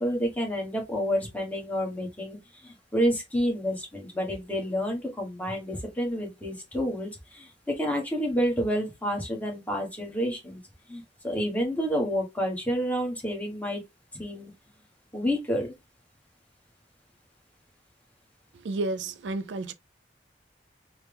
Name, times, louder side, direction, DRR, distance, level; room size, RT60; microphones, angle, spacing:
voice 1, 0.0-10.6 10.9-13.8 14.1-14.5 15.1-15.7, equal, 10° left, 1.4 m, -29 dB
voice 2, 18.6-19.7, right 2 dB, 80° right, 0.4 m, -31 dB
4.4 x 2.2 x 3.4 m
head